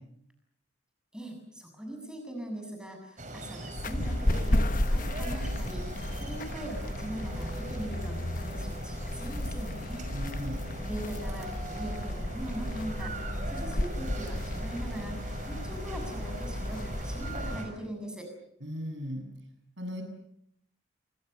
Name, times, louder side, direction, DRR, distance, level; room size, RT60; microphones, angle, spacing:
voice 1, 1.1-5.8 6.2-10.0 10.8-18.3, right 1 dB, 5° right, 3 dB, 7.3 m, -41 dB
sound 1, 3.2-17.7, right 1 dB, 40° right, 6.0 m, -40 dB
sound 2, 3.8-17.6, left 1 dB, 40° left, 1.2 m, -33 dB
voice 2, 10.1-10.6 18.6-19.2 19.8-20.0, equal, 65° right, 5 dB, 7.4 m, -36 dB
28.5 x 25.0 x 6.8 m, 0.70 s
head